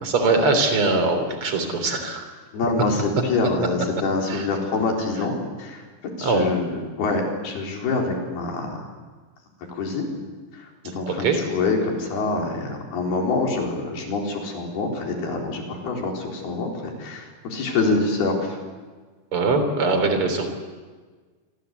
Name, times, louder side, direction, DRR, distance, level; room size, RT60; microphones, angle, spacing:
voice 1, 0.0-2.3 4.3-4.5 6.2-6.5 11.1-11.4 19.3-20.5, right 3 dB, 35° right, 7 dB, 4.0 m, -22 dB
voice 2, 2.5-5.8 6.2-8.9 9.7-10.2 10.6-18.6, left 3 dB, 85° left, 1 dB, 6.2 m, -26 dB
28.0 x 24.0 x 8.3 m, 1.4 s
omnidirectional pair, 4.4 m